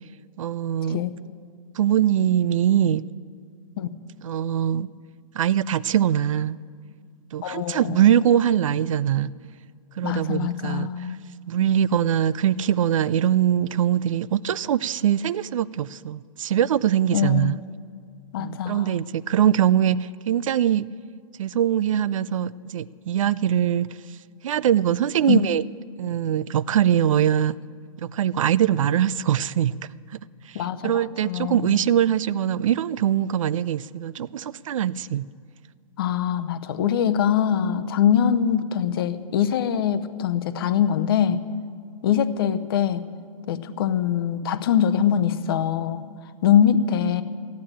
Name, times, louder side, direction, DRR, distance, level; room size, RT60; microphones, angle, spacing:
voice 1, 0.4-1.0 1.8-3.0 4.2-4.9 5.3-6.6 7.3-9.3 10.0-10.9 11.5-17.6 18.4-20.8 21.4-24.0 24.4-25.6 26.0-27.6 28.0-29.7 30.1-30.2 30.5-35.3, right 10 dB, 65° right, 19 dB, 0.4 m, -22 dB
voice 2, 7.4-8.0 10.0-11.2 17.1-17.6 18.3-18.9 25.3-25.4 30.5-31.9 36.0-41.4 42.0-43.0 43.5-46.0 46.4-47.2, left 9 dB, 40° left, 12 dB, 0.7 m, -23 dB
14.0 x 9.5 x 8.8 m, 2.1 s
hypercardioid pair, 160°, 18 cm